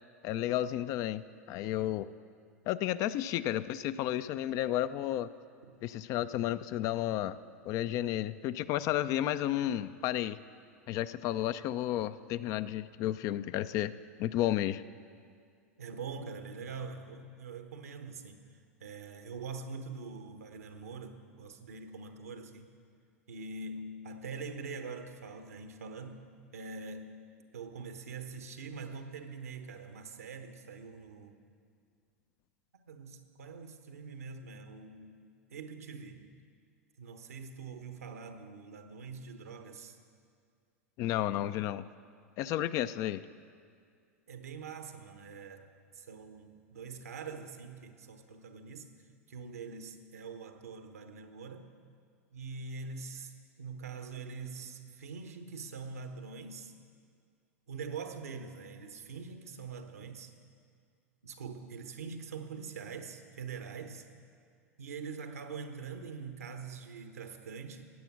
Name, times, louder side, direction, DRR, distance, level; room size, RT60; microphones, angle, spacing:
voice 1, 0.2-2.1 2.7-5.3 5.8-7.4 7.6-10.4 10.9-13.9 14.2-14.8 41.0-41.9 42.4-43.2, left 13 dB, 40° left, 14 dB, 0.4 m, -32 dB
voice 2, 15.8-18.4 18.8-22.7 23.3-26.3 26.5-27.1 27.5-31.4 32.7-35.1 35.5-36.3 37.0-40.0 44.3-48.9 49.3-51.7 52.3-53.3 53.6-56.7 57.7-60.3 61.2-64.1 64.8-67.9, right 5 dB, 80° right, 7 dB, 1.2 m, -44 dB
16.0 x 9.2 x 6.1 m, 2.2 s
figure-of-eight pair, 90°, 8 cm